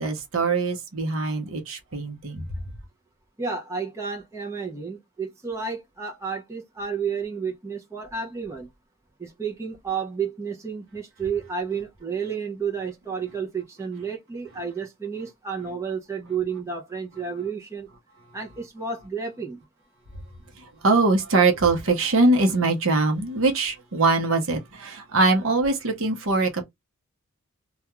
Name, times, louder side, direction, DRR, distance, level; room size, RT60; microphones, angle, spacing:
voice 1, 0.0-2.5 20.8-26.6, right 3 dB, 65° right, 0.8 m, -22 dB
voice 2, 3.4-8.7 9.2-17.9 18.3-19.6, right 6 dB, 15° right, 0.6 m, -31 dB
2.3 x 2.3 x 2.9 m
head